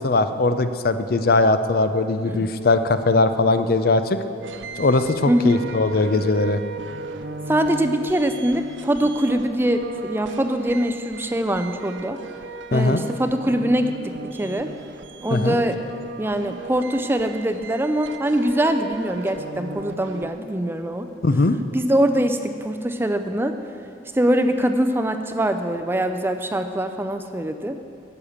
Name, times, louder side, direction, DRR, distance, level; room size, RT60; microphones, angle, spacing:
voice 1, 0.0-4.2 4.8-6.6 12.7-13.0 15.3-15.6 21.2-21.6, left 3 dB, 55° left, 10 dB, 0.5 m, -20 dB
sound 1, 4.4-20.3, right 3 dB, 85° right, 0.6 m, -37 dB
voice 2, 5.3-5.7 7.5-12.2 12.7-14.7 15.2-15.8 16.2-21.1 21.7-23.6 24.1-27.8, right 1 dB, 10° right, 7 dB, 0.4 m, -23 dB
10.5 x 6.5 x 8.6 m, 2.5 s
head